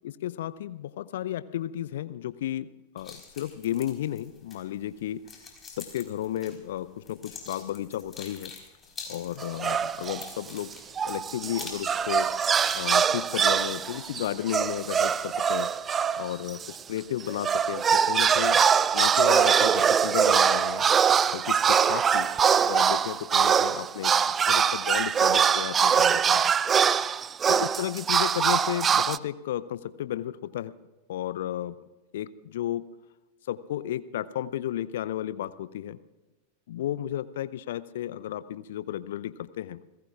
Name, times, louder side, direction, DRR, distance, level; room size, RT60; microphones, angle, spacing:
voice 1, 0.0-2.7 2.9-5.2 5.8-8.5 9.1-10.7 11.0-12.3 12.7-15.7 16.2-18.6 18.9-20.9 21.3-22.3 22.6-24.1 24.4-26.5 27.5-30.7 31.1-31.8 32.1-32.8 33.5-36.0 36.7-39.8, left 12 dB, 55° left, 15 dB, 0.6 m, -33 dB
sound 1, 3.0-14.7, left 5 dB, 20° left, 4.1 m, -47 dB
sound 2, 9.4-10.3 10.7-16.8 17.2-29.2, right 7 dB, 20° right, 0.4 m, -23 dB
29.5 x 16.5 x 2.5 m, 1.1 s
figure-of-eight pair, 90°, 0 cm